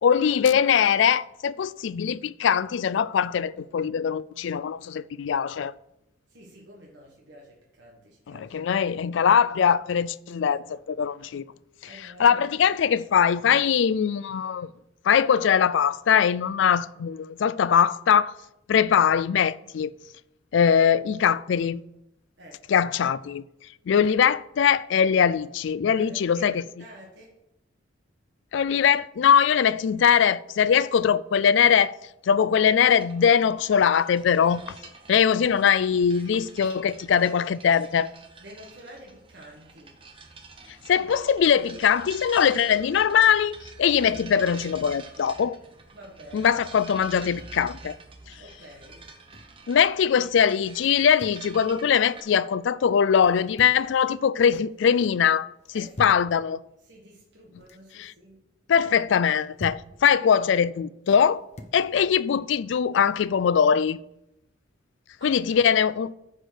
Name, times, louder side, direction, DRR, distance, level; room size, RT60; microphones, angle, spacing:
voice 1, 0.0-5.7 8.3-11.4 12.2-14.7 15.0-18.3 18.7-19.9 20.5-21.8 22.7-23.4 23.9-26.6 28.5-32.0 32.3-34.8 35.1-38.1 40.9-45.6 46.3-48.0 49.7-55.5 55.7-56.6 58.0-58.1 58.7-61.4 61.7-64.0 65.2-66.1, left 7 dB, 70° left, 0.3 m, -21 dB
voice 2, 6.3-8.6 11.8-12.5 22.4-22.6 25.9-27.4 38.4-40.0 40.9-41.1 45.9-46.6 48.4-49.1 55.7-56.2 56.8-58.4 65.2-65.7, equal, 60° right, 1.5 m, -48 dB
sound 1, 33.0-52.2, right 4 dB, 25° right, 1.0 m, -47 dB
sound 2, 47.1-47.6 49.0-49.6 50.9-51.5 53.2-53.9 54.3-54.8 55.6-56.3 57.3-57.9 59.2-59.9 61.1-61.8, left 1 dB, 35° left, 0.9 m, -44 dB
10.0 x 4.9 x 6.4 m
head